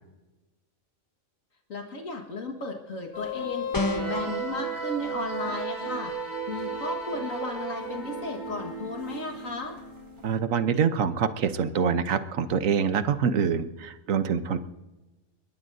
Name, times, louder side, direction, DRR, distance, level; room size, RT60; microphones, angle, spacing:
voice 1, 1.7-6.1 6.5-9.8, left 2 dB, 75° left, 2 dB, 2.1 m, -34 dB
sound 1, 3.1-10.4, right 2 dB, 35° right, 3.6 m, -34 dB
sound 2, 3.7-4.3, left 2 dB, 20° left, 0.8 m, -28 dB
voice 2, 10.2-14.6, right 7 dB, 75° right, 11 dB, 1.3 m, -25 dB
23.5 x 21.0 x 2.7 m, 1.1 s
omnidirectional pair, 1.4 m